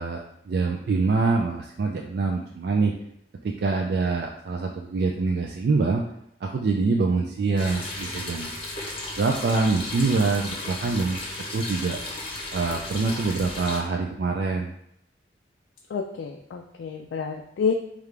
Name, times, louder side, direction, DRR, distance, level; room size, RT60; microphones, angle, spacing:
voice 1, 0.0-3.0 3.4-6.0 6.4-8.5 9.2-11.2 11.5-12.0 12.5-14.7, right 4 dB, 55° right, 1 dB, 0.3 m, -25 dB
sound 1, 7.6-13.8, left 2 dB, 30° left, 0.8 m, -34 dB
voice 2, 15.9-17.7, left 6 dB, 85° left, 3 dB, 0.3 m, -29 dB
4.9 x 2.4 x 3.3 m, 0.75 s
head